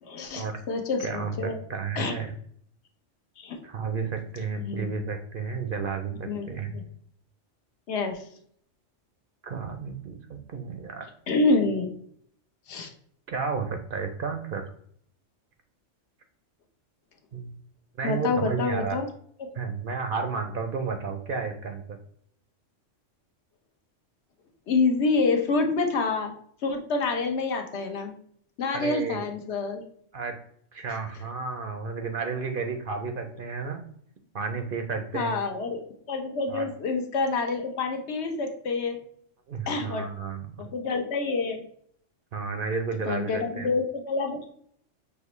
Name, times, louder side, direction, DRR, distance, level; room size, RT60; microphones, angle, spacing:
voice 1, 0.0-1.6 2.0-2.1 3.4-3.6 4.6-4.8 6.2-6.5 6.7-6.8 7.9-8.2 11.3-11.9 12.7-12.9 18.0-19.1 19.4-19.5 24.7-26.3 26.6-28.1 28.6-29.8 35.1-39.0 39.7-40.1 40.6-41.6 43.1-44.5, left 3 dB, 65° left, 5 dB, 0.9 m, -27 dB
voice 2, 1.0-2.3 3.6-6.8 9.4-11.1 13.3-14.6 17.3-17.5 18.0-19.0 19.5-21.8 28.7-29.2 30.1-30.3 30.7-33.8 34.3-35.4 36.5-36.7 39.5-40.5 42.3-43.7, right 5 dB, 55° right, 6 dB, 0.6 m, -32 dB
5.9 x 2.9 x 3.0 m, 0.64 s
omnidirectional pair, 1.3 m